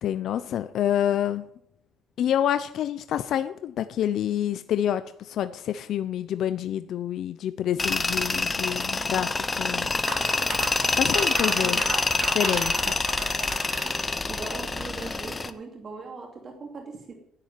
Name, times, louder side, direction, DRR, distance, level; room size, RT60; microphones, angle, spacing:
voice 1, 0.0-1.4 2.2-5.0 5.3-9.3 9.6-9.9 11.0-11.8 12.2-12.8, left 10 dB, 60° left, 11 dB, 0.7 m, -27 dB
Tools, 7.8-15.5, left 3 dB, 15° left, 0.8 m, -26 dB
sound 1, 10.1-15.2, right 5 dB, 60° right, 2.7 m, -36 dB
voice 2, 11.5-11.9 13.8-14.0 14.3-17.1, right 4 dB, 35° right, 1 dB, 2.6 m, -40 dB
11.0 x 9.9 x 9.3 m, 0.74 s
cardioid pair, 160°, 0 cm